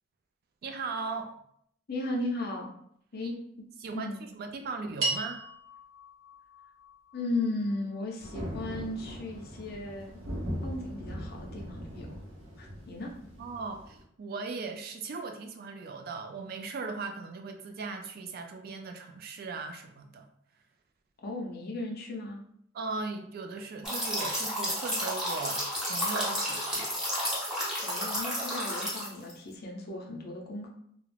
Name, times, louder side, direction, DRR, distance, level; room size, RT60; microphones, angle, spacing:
voice 1, 0.6-1.3 3.2-3.3 3.8-4.1 4.4-5.4 13.4-20.3 22.7-26.9, right 4 dB, 50° right, 5 dB, 0.3 m, -38 dB
voice 2, 1.9-2.7 3.1-3.7 3.9-4.2 7.1-10.2 10.6-12.1 12.6-13.1 21.2-22.4 27.8-30.7, left 2 dB, 50° left, 0 dB, 0.5 m, -36 dB
sound 1, 5.0-9.5, right 3 dB, 90° right, 1.1 m, -38 dB
Thunder, 8.2-14.0, equal, 75° right, 0.6 m, -40 dB
sound 2, 23.8-29.3, equal, 5° right, 0.7 m, -31 dB
2.4 x 2.0 x 3.1 m, 0.68 s
head